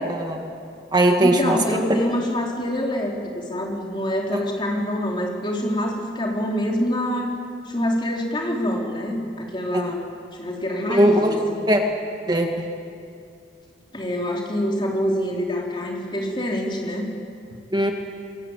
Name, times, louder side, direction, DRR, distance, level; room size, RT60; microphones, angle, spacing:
voice 1, 0.1-0.4 0.9-1.6 4.3-4.4 9.7-10.0 10.9-11.4 11.7-11.8 12.3-12.7 17.7-17.9, right 1 dB, 25° right, 3 dB, 1.9 m, -19 dB
voice 2, 1.2-7.4 7.7-10.0 10.3-11.6 13.9-17.1, equal, 25° left, -1 dB, 4.1 m, -26 dB
25.5 x 22.0 x 9.1 m, 2.5 s
head